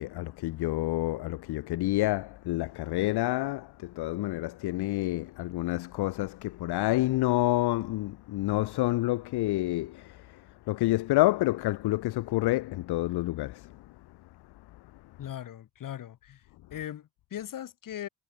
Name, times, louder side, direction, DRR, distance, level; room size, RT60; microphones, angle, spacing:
voice 1, 0.0-13.9, left 18 dB, 70° left, 0.6 m, -28 dB
voice 2, 15.2-16.4 16.7-18.1, left 11 dB, 50° left, 1.5 m, -39 dB
cardioid pair, 150°, 41 cm